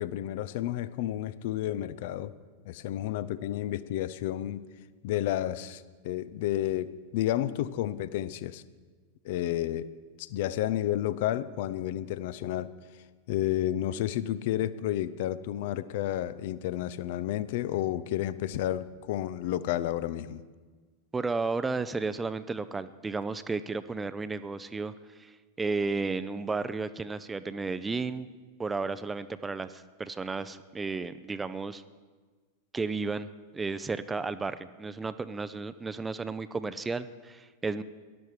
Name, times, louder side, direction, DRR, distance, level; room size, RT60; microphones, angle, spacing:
voice 1, 0.0-2.3 2.6-4.6 5.0-8.6 9.2-9.9 10.2-12.7 13.3-20.4, left 13 dB, 50° left, 16 dB, 0.6 m, -31 dB
voice 2, 21.1-24.9 25.2-28.3 28.6-31.8 32.7-33.3 33.5-37.8, right 4 dB, 15° right, 13 dB, 0.5 m, -33 dB
18.0 x 12.0 x 4.8 m, 1.4 s
figure-of-eight pair, 90°, 0 cm